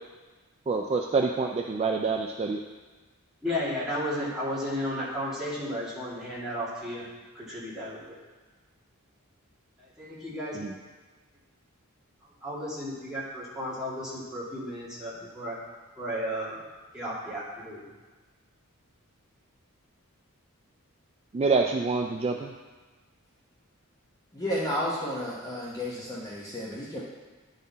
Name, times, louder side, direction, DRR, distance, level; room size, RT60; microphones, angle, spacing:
voice 1, 0.7-2.6 10.5-10.7 21.3-22.5, right 4 dB, 30° right, 2 dB, 0.3 m, -26 dB
voice 2, 3.4-7.0 7.3-8.0 10.0-10.6 12.4-15.6 16.0-16.6 16.9-17.8, equal, 5° right, -9 dB, 2.1 m, -33 dB
voice 3, 24.3-27.0, left 1 dB, 15° left, -6 dB, 0.9 m, -32 dB
10.5 x 4.0 x 4.0 m, 1.3 s
head